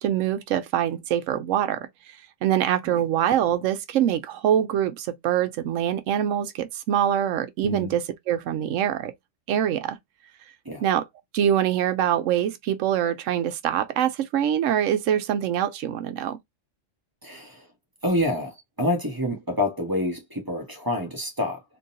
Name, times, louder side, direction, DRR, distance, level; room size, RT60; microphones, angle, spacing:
voice 1, 0.0-1.9 2.4-9.1 9.5-10.0 10.8-11.0 11.3-16.4, right 10 dB, 90° right, 1.0 m, -24 dB
voice 2, 7.6-7.9 10.6-10.8 17.2-17.7 18.0-21.6, left 1 dB, 20° right, 1.2 m, -27 dB
3.8 x 2.8 x 2.7 m
omnidirectional pair, 1.3 m